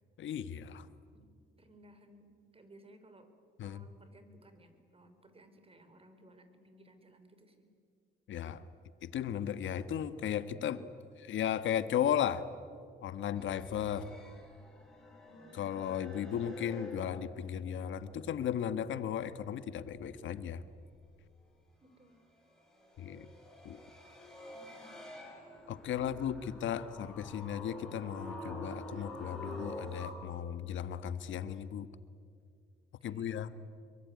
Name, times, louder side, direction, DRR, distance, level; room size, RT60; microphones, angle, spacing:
voice 1, 0.2-0.9 3.6-3.8 8.3-8.6 9.0-10.8 11.2-12.5 13.0-14.1 15.5-20.6 23.0-23.3 23.6-23.8 25.7-31.9 33.0-33.5, left 9 dB, 75° left, 13 dB, 1.4 m, -35 dB
voice 2, 1.6-3.3 3.6-7.7 15.3-15.7 21.8-22.2 24.5-25.0 33.0-33.5, right 1 dB, 30° right, 9 dB, 4.0 m, -59 dB
sound 1, 13.3-17.8 18.1-19.2 22.5-30.1, left 1 dB, ahead, 7.9 m, -48 dB
26.0 x 23.0 x 9.5 m, 2.3 s
cardioid pair, 90°, 20 cm